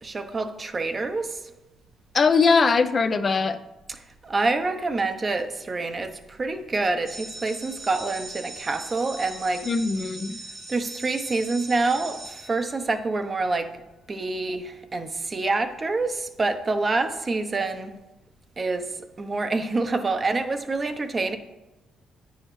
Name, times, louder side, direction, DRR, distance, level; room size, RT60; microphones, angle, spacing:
voice 1, 0.0-1.4 3.9-9.7 10.7-13.7 14.1-18.0 18.6-18.9 19.2-21.4, right 3 dB, 30° right, 8 dB, 0.8 m, -27 dB
voice 2, 2.1-3.6 9.6-10.4, left 4 dB, 40° left, 8 dB, 0.5 m, -21 dB
sound 1, 7.0-13.2, right 2 dB, 55° right, 1.5 m, -40 dB
9.5 x 7.0 x 3.1 m, 1.1 s
cardioid pair, 90°, 0 cm